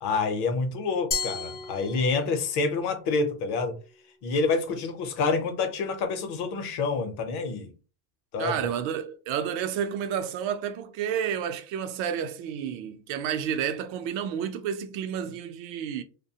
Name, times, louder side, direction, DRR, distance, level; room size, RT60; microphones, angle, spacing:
voice 1, 0.0-3.7 4.2-7.7 8.3-8.6, left 4 dB, 55° left, 0.7 m, -27 dB
Glass, 1.1-2.5, left 4 dB, 20° left, 0.4 m, -33 dB
voice 2, 8.4-16.0, right 8 dB, 70° right, 0.6 m, -30 dB
2.6 x 2.2 x 2.7 m
cardioid pair, 140°, 49 cm